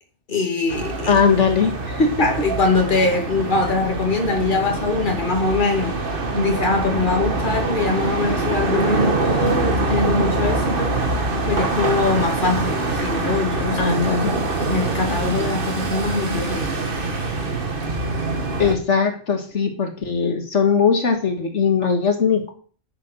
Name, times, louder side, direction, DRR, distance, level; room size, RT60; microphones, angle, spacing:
voice 1, 0.3-1.2 2.2-6.0 6.3-11.0 11.5-13.8 14.6-16.7, left 3 dB, 45° left, 2.2 m, -22 dB
sound 1, 0.7-18.7, right 3 dB, 50° right, 1.7 m, -24 dB
voice 2, 1.1-2.1 13.8-14.3 18.6-22.5, left 5 dB, 75° left, 1.9 m, -19 dB
10.0 x 7.6 x 6.5 m
omnidirectional pair, 1.2 m